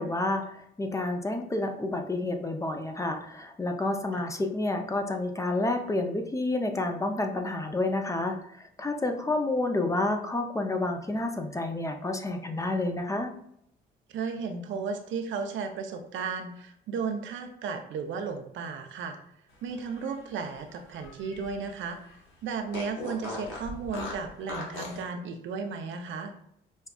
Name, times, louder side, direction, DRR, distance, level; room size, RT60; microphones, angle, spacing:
voice 1, 0.0-13.3, left 2 dB, 15° left, 4 dB, 0.5 m, -29 dB
voice 2, 14.1-19.2 19.6-22.0 22.4-26.3, right 5 dB, 75° right, 6 dB, 0.5 m, -34 dB
Fart, 19.7-21.8 22.1-22.2 22.7-25.1, left 2 dB, 80° left, 1.0 m, -39 dB
5.2 x 2.3 x 2.3 m, 0.72 s
cardioid pair, 90°, 20 cm